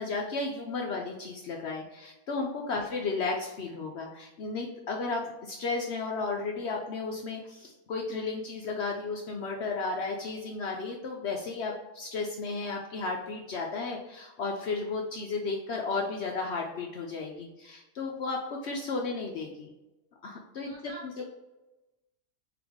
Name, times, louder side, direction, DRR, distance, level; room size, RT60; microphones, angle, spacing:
voice 1, 0.0-19.7 20.2-20.7, left 3 dB, 65° left, 1 dB, 0.7 m, -34 dB
voice 2, 20.7-21.2, right 3 dB, 70° right, -3 dB, 1.7 m, -47 dB
3.8 x 3.4 x 3.5 m, 1.0 s
omnidirectional pair, 1.5 m